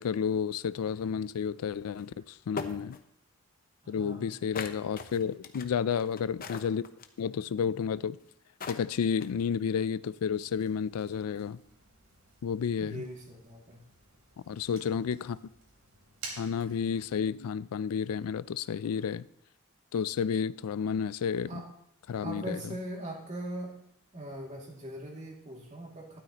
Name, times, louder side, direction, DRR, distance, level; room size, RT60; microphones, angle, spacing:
voice 1, 0.0-3.0 3.9-6.9 7.2-8.2 8.7-11.6 12.4-13.0 14.5-15.4 16.4-19.3 19.9-21.6 22.1-22.7, left 7 dB, 80° left, 0.4 m, -31 dB
sound 1, 2.0-2.1 2.6-3.0 4.6-7.2 8.2-8.3 8.6-9.4, left 4 dB, 40° left, 0.8 m, -39 dB
voice 2, 3.8-4.3 12.8-13.8 21.5-21.7 22.2-23.8 24.1-26.2, right 1 dB, 35° right, 2.4 m, -40 dB
Fire, 10.3-17.1, right 3 dB, 65° right, 3.6 m, -51 dB
13.0 x 12.0 x 2.9 m
head